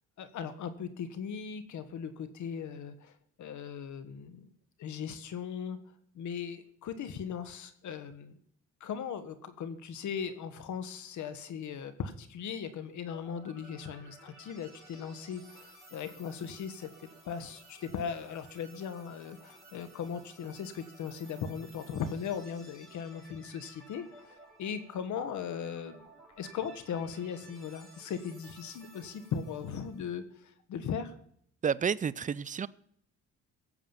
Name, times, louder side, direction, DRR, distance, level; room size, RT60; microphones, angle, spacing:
voice 1, 0.2-4.5 4.8-5.8 6.1-8.4 8.8-26.1 26.4-31.1, left 7 dB, 75° left, 12 dB, 1.6 m, -38 dB
sound 1, 13.1-30.0, right 1 dB, ahead, 5.8 m, -56 dB
voice 2, 31.6-32.7, right 7 dB, 25° right, 19 dB, 0.5 m, -30 dB
17.5 x 7.4 x 7.3 m, 0.67 s
cardioid pair, 90°, 30 cm